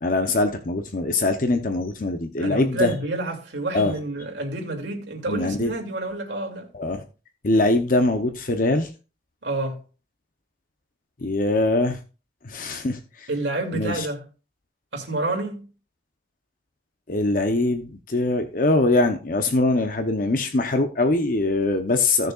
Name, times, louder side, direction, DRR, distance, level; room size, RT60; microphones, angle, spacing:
voice 1, 0.0-2.9 3.7-3.9 5.3-5.7 6.7-7.0 7.4-8.9 11.2-12.0 12.4-13.3 13.7-14.1 17.1-22.3, left 2 dB, 50° left, 0.8 m, -22 dB
voice 2, 2.4-6.7 9.4-9.8 13.3-14.3 14.9-15.7, right 2 dB, 85° right, 2.6 m, -28 dB
16.5 x 6.5 x 2.4 m
head